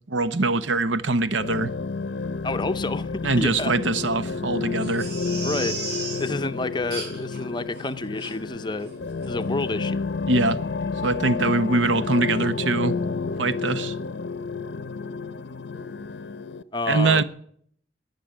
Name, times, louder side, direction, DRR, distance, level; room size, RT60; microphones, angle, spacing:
voice 1, 0.1-1.7 3.2-5.1 10.3-10.6 11.0-12.9 13.4-13.9 16.9-17.2, right 3 dB, 80° right, 0.9 m, -23 dB
sound 1, 1.4-16.6, left 4 dB, 65° left, 0.6 m, -30 dB
voice 2, 2.4-3.1 3.4-3.7 5.4-5.8 6.2-8.9 9.3-10.1 16.7-17.2, left 2 dB, 25° left, 0.6 m, -29 dB
Crying sobbing, 4.8-6.3 6.9-7.4 7.7-7.8 8.2-8.3 8.8-9.0 9.2-9.3, right 3 dB, 55° right, 5.2 m, -34 dB
20.0 x 6.9 x 8.9 m
head